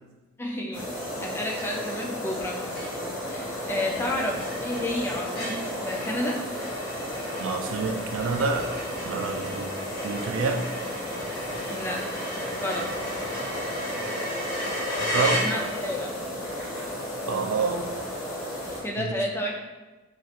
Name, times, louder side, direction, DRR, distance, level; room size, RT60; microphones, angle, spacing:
voice 1, 0.4-2.7 3.3-6.4 11.7-12.9 15.1-16.1 18.8-19.6, left 1 dB, 10° left, -1 dB, 0.3 m, -31 dB
sound 1, 0.7-18.8, equal, 90° left, 1.1 m, -34 dB
sound 2, 1.6-2.0 2.4-2.5 2.7-16.0, equal, 50° left, 1.2 m, -35 dB
voice 2, 7.4-8.6 9.1-9.7 10.0-10.7 15.1-15.4 17.3-17.9 19.0-19.1, right 4 dB, 80° right, 4 dB, 0.3 m, -27 dB
3.1 x 2.4 x 2.8 m, 1.2 s
head